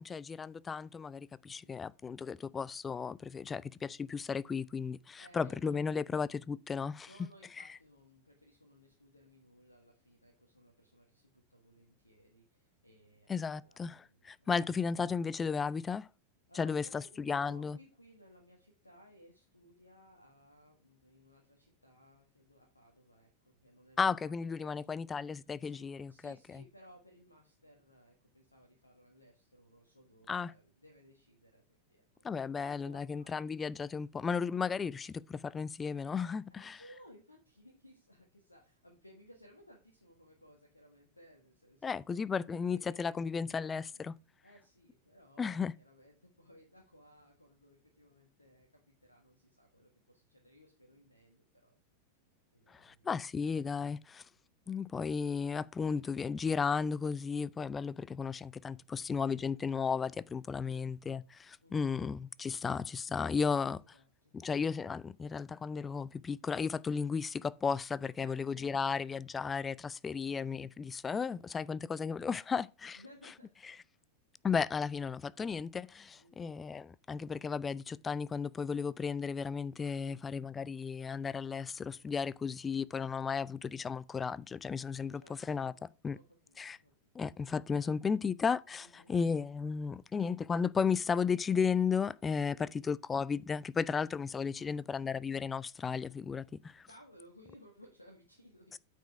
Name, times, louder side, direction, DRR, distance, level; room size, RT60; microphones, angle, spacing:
voice 1, 0.0-7.1 7.6-7.7 13.3-16.1 16.6-17.8 24.0-26.6 30.3-30.5 32.2-36.8 41.8-44.1 45.4-45.7 52.7-54.2 54.7-63.8 64.3-73.0 74.4-85.2 85.5-85.7 86.0-86.2 86.6-86.8 87.1-96.8 98.7-98.8, left 5 dB, 15° left, 0.3 m, -34 dB
voice 2, 1.4-1.8 5.2-6.1 7.1-14.6 16.5-25.2 25.6-32.0 32.6-34.0 36.5-42.0 42.3-44.0 44.4-51.8 52.5-53.1 60.5-60.8 61.6-62.0 63.2-64.4 68.2-68.7 70.0-70.4 71.3-71.5 72.9-73.5 73.9-74.0 76.2-76.5 79.9-80.2 85.0-86.9 87.7-88.2 88.8-89.1 92.5-92.7 94.5-95.0 96.9-98.8, equal, 85° left, 1.5 m, -61 dB
9.0 x 5.1 x 4.7 m
figure-of-eight pair, 90°, 0 cm